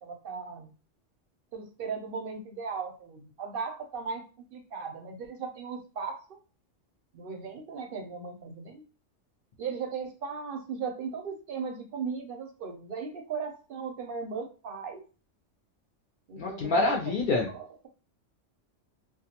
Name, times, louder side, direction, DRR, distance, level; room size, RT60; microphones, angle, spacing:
voice 1, 0.0-0.7 1.5-6.4 7.1-8.8 9.6-15.0 16.3-17.1 17.5-17.9, right 5 dB, 60° right, 4 dB, 0.6 m, -37 dB
voice 2, 16.4-17.5, left 3 dB, 65° left, 1 dB, 0.5 m, -26 dB
2.3 x 2.2 x 2.8 m, 0.34 s
omnidirectional pair, 1.3 m